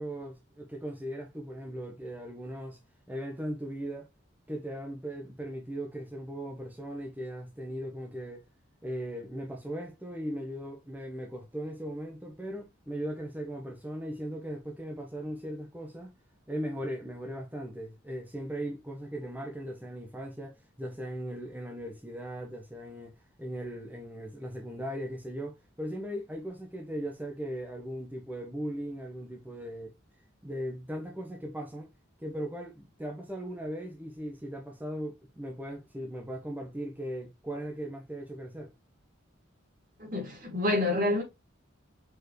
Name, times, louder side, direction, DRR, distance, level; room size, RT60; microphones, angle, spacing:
voice 1, 0.0-2.8 3.1-4.1 4.5-8.5 8.8-16.1 16.5-29.9 30.4-31.9 32.2-38.7, equal, 10° right, 1.0 m, -38 dB
voice 2, 40.0-41.2, left 2 dB, 40° right, 2.7 m, -28 dB
6.6 x 4.6 x 3.2 m
head